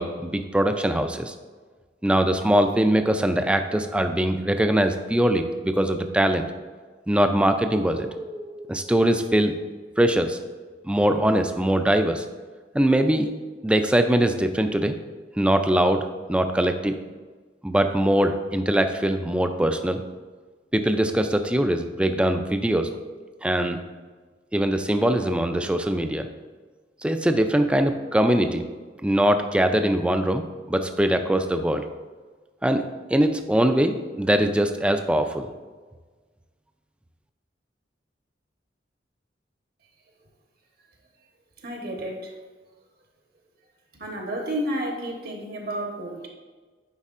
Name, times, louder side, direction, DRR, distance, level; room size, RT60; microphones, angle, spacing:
voice 1, 0.0-1.3 2.0-6.4 7.1-9.6 10.0-10.4 10.8-12.2 12.7-13.3 13.6-14.9 15.4-16.9 17.6-20.0 20.7-22.9 23.4-23.8 24.5-26.3 27.0-28.6 29.0-30.4 30.7-31.8 32.6-32.8 33.1-35.5, right 1 dB, 5° right, 7 dB, 0.3 m, -22 dB
voice 2, 41.6-42.3 43.9-46.3, right 1 dB, 60° right, 1 dB, 1.1 m, -31 dB
9.5 x 4.4 x 2.5 m, 1.4 s
head